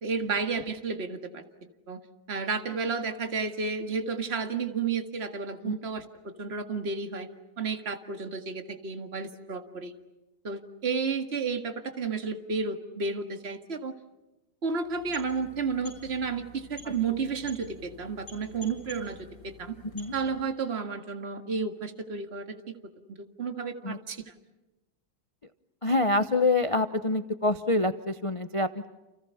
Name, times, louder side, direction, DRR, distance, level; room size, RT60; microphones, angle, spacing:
voice 1, 0.0-1.4 1.9-2.0 2.3-7.3 7.6-9.9 10.4-13.9 14.6-19.8 20.1-22.6 23.1-24.2, right 5 dB, 35° right, 6 dB, 2.1 m, -32 dB
sound 1, 14.8-20.6, left 2 dB, 60° left, 7.9 m, -49 dB
voice 2, 25.8-28.9, left 2 dB, 35° left, 9 dB, 0.5 m, -26 dB
30.0 x 29.5 x 5.7 m, 1.0 s
omnidirectional pair, 2.1 m